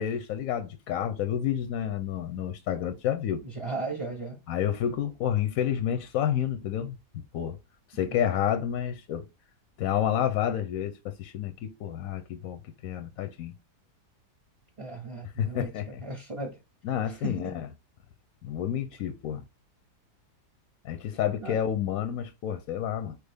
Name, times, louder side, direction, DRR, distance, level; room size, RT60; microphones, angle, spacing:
voice 1, 0.0-3.4 4.5-7.0 7.3-7.6 7.9-9.3 9.8-13.5 15.4-16.0 16.8-17.7 18.4-19.4 20.8-23.2, left 10 dB, 70° left, 0.9 m, -29 dB
voice 2, 3.6-4.4 8.0-8.2 14.8-15.7 16.0-16.6 17.2-17.5 21.4-21.6, right 3 dB, 25° right, 0.8 m, -35 dB
4.2 x 3.4 x 3.5 m
omnidirectional pair, 1.8 m